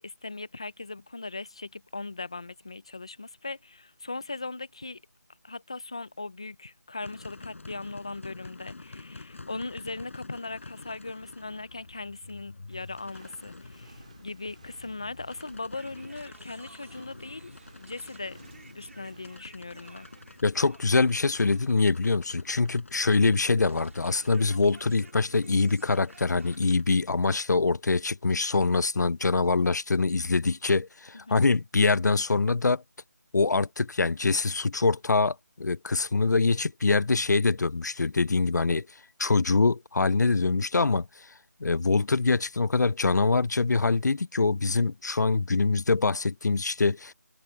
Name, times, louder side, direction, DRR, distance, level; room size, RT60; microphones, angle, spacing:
voice 1, 0.0-5.0 5.4-18.4 18.7-20.1 31.3-31.4, left 3 dB, 20° left, 0.5 m, -39 dB
sound 1, 7.0-26.8, left 3 dB, 45° left, 6.8 m, -48 dB
Walk footsteps, 12.7-20.4, right 5 dB, 25° right, 2.0 m, -58 dB
sound 2, 15.7-26.6, right 3 dB, 50° right, 4.1 m, -54 dB
voice 2, 20.4-32.8 33.3-38.9 39.2-41.3 41.6-47.1, left 3 dB, 75° left, 0.5 m, -24 dB
figure-of-eight pair, 180°, 9 cm